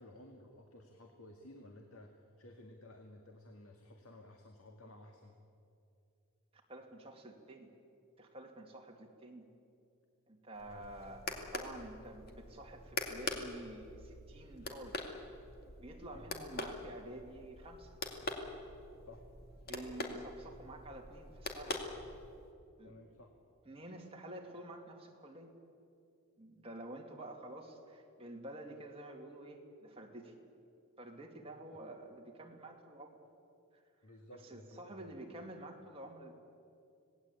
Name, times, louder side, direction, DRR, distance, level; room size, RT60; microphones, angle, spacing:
voice 1, 0.0-5.4 10.7-10.9 16.1-16.3 19.1-19.3 22.8-23.3 31.4-31.8 34.0-35.1, left 1 dB, 75° left, 3 dB, 2.1 m, -55 dB
voice 2, 6.5-7.7 8.2-9.5 10.3-15.0 15.8-18.0 19.7-21.8 22.8-22.9 23.6-25.5 26.4-30.3 31.0-33.2 33.7-33.8 34.4-36.3, right 1 dB, 25° right, 1 dB, 2.6 m, -49 dB
sound 1, 10.6-22.5, left 2 dB, 45° left, 2.4 m, -44 dB
26.5 x 19.0 x 8.5 m, 2.6 s
head